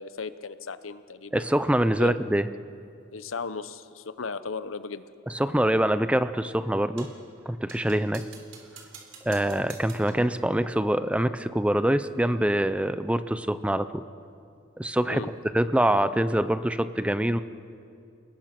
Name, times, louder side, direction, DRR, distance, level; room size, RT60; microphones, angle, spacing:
voice 1, 0.0-1.5 2.0-2.2 3.1-5.0 15.1-15.3, left 4 dB, 85° left, 13 dB, 0.9 m, -36 dB
voice 2, 1.3-2.4 5.3-7.1 7.5-8.2 9.2-14.0 14.8-17.4, right 1 dB, 5° right, 12 dB, 0.5 m, -25 dB
sound 1, 7.0-7.3 7.7-10.3, right 6 dB, 70° right, 3.5 m, -48 dB
29.5 x 19.5 x 6.0 m, 2.5 s
head